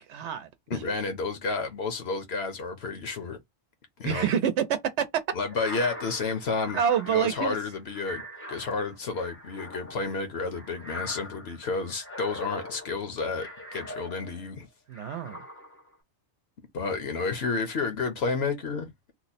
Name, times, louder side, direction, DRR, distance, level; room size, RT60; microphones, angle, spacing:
voice 1, 0.1-0.8 4.0-5.1 6.7-7.6 14.9-15.4, right 8 dB, 80° right, 0.9 m, -27 dB
voice 2, 0.7-3.4 4.0-4.3 5.3-6.8 7.1-8.2 8.5-14.7 16.7-18.9, left 4 dB, 65° left, 1.0 m, -31 dB
sound 1, 5.4-14.5 14.9-15.9, left 1 dB, 15° left, 0.7 m, -42 dB
2.9 x 2.0 x 4.0 m
omnidirectional pair, 1.2 m